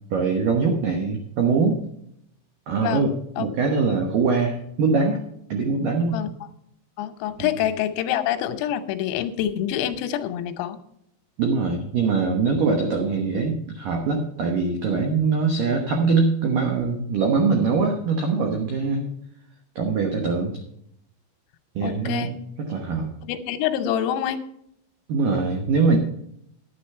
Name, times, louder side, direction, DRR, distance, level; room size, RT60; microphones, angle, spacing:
voice 1, 0.1-1.8 2.7-3.1 3.4-5.2 5.5-6.2 7.4-7.5 11.4-19.1 19.8-20.6 21.8-23.1 25.1-26.0, right 4 dB, 90° right, 3 dB, 1.9 m, -22 dB
voice 2, 7.0-10.8 21.8-22.3 23.2-24.4, left 11 dB, 90° left, 9 dB, 3.6 m, -26 dB
10.5 x 10.5 x 4.4 m, 0.74 s
omnidirectional pair, 5.9 m